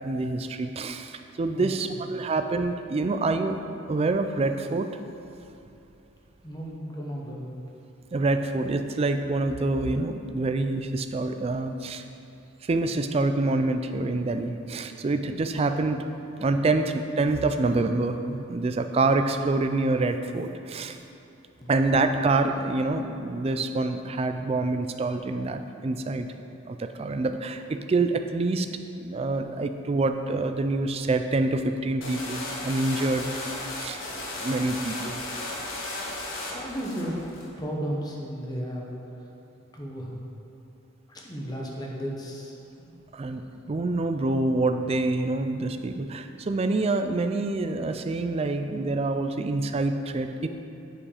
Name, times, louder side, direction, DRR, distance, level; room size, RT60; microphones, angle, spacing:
voice 1, 0.0-3.6 3.9-4.9 8.1-12.0 12.6-16.0 16.4-21.0 21.7-26.3 26.6-28.7 29.0-33.5 33.8-35.2 43.1-50.5, right 2 dB, 30° right, 8 dB, 0.3 m, -26 dB
voice 2, 1.5-2.0 6.4-7.5 21.6-21.7 36.5-37.2 37.6-38.9 39.7-40.1 41.1-43.0, equal, 20° left, -2 dB, 1.1 m, -34 dB
sound 1, 32.0-37.5, left 2 dB, 75° left, 1.4 m, -35 dB
8.4 x 4.9 x 5.0 m, 2.8 s
head